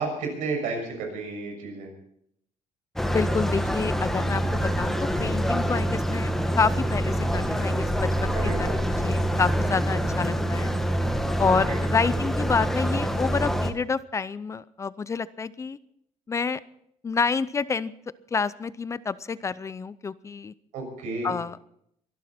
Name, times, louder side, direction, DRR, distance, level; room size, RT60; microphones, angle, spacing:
voice 1, 0.0-1.9 8.3-8.8 11.5-11.8 20.7-21.3, right 3 dB, 90° right, 3 dB, 6.6 m, -32 dB
voice 2, 3.0-8.3 8.6-10.7 11.4-15.8 16.3-16.6 17.0-17.9 18.3-20.5 21.2-21.6, left 5 dB, 25° left, 17 dB, 0.5 m, -28 dB
sound 1, 3.0-13.7, equal, 5° left, 1.3 m, -26 dB
24.0 x 12.0 x 4.3 m, 0.72 s
cardioid pair, 140°, 12 cm